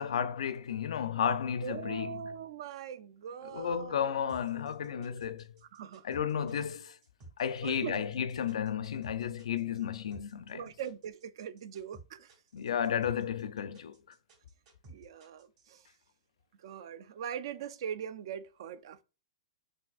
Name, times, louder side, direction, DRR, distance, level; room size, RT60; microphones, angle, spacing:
voice 1, 0.0-2.2 3.5-5.4 6.1-7.0 7.4-10.6 12.5-14.0, left 8 dB, 90° left, 0.4 m, -33 dB
voice 2, 1.6-5.2 5.6-6.1 7.6-8.0 10.5-12.4 14.9-15.9 16.6-19.0, right 8 dB, 55° right, 0.4 m, -42 dB
sound 1, 4.3-15.8, right 2 dB, 35° right, 2.1 m, -55 dB
5.9 x 2.5 x 2.4 m
hypercardioid pair, 165°, 3 cm